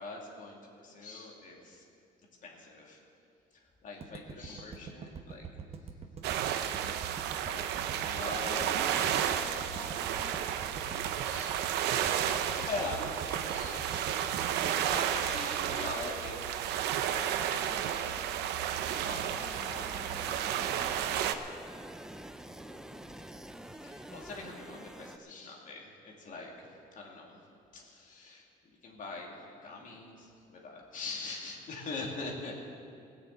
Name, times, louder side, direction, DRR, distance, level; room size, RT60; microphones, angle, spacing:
voice 1, 0.0-1.9 2.4-3.0 3.5-5.5 6.4-6.8 7.4-9.1 11.2-11.7 12.1-18.1 19.1-21.1 23.8-27.4 27.7-32.5, left 3 dB, 50° left, -1 dB, 2.6 m, -43 dB
sound 1, 4.0-16.2, right 5 dB, 35° right, 1.0 m, -45 dB
sound 2, 6.2-21.4, right 10 dB, 85° right, 0.7 m, -32 dB
voice 2, 8.3-11.0 22.4-23.0, left 2 dB, 15° left, -4 dB, 2.3 m, -49 dB
sound 3, 18.8-25.2, right 1 dB, 5° right, 0.6 m, -46 dB
17.0 x 6.9 x 8.2 m, 2.5 s
cardioid pair, 110°, 17 cm